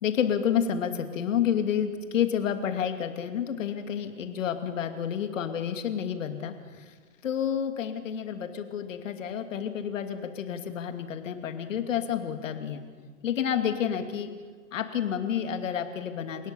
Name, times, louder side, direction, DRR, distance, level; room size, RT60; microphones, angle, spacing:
voice 1, 0.0-6.8 7.2-12.8 13.2-14.3 14.7-16.5, left 8 dB, 60° left, 7 dB, 2.6 m, -29 dB
29.0 x 17.5 x 7.0 m, 1.6 s
hypercardioid pair, 145°, 43 cm